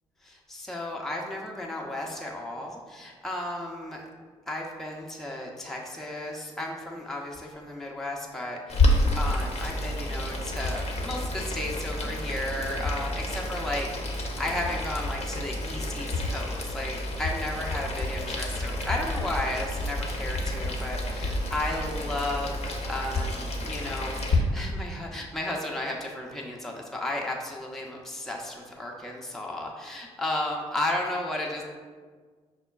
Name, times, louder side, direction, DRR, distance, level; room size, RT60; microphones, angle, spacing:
voice 1, 0.2-4.0 4.5-31.6, left 1 dB, ahead, -2 dB, 0.6 m, -34 dB
Boiling, 8.7-24.4, left 1 dB, 45° left, 0.7 m, -29 dB
6.1 x 2.2 x 2.3 m, 1.5 s
hypercardioid pair, 45°, 16 cm